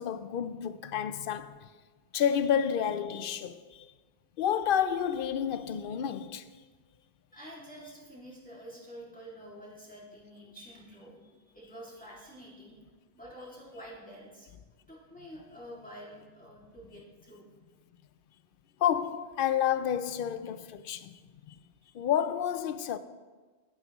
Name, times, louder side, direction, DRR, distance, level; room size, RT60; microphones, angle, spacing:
voice 1, 0.0-1.7 2.1-3.9 4.4-6.4 18.8-21.6 21.9-23.0, left 9 dB, 65° left, 0.7 m, -30 dB
voice 2, 7.3-12.8 13.1-14.5 14.9-17.4, equal, 10° left, 2.3 m, -48 dB
11.0 x 10.5 x 3.0 m
omnidirectional pair, 1.0 m